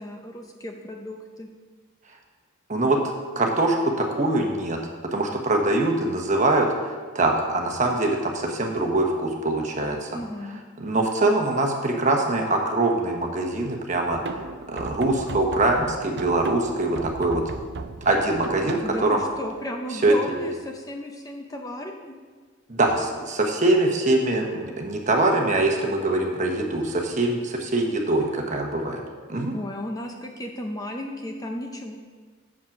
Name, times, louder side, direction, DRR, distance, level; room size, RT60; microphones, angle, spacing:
voice 1, 0.0-1.5 10.1-10.6 18.8-22.1 29.5-32.0, left 1 dB, 15° left, 3 dB, 0.6 m, -34 dB
voice 2, 2.7-3.0 3.3-4.8 5.1-10.1 10.8-14.4 14.7-17.4 18.0-19.2 20.0-20.2 22.7-29.0 29.3-29.5, right 2 dB, 35° right, 2 dB, 1.1 m, -23 dB
sound 1, 14.1-19.6, right 4 dB, 55° right, 0.4 m, -36 dB
7.4 x 7.4 x 5.9 m, 1.5 s
head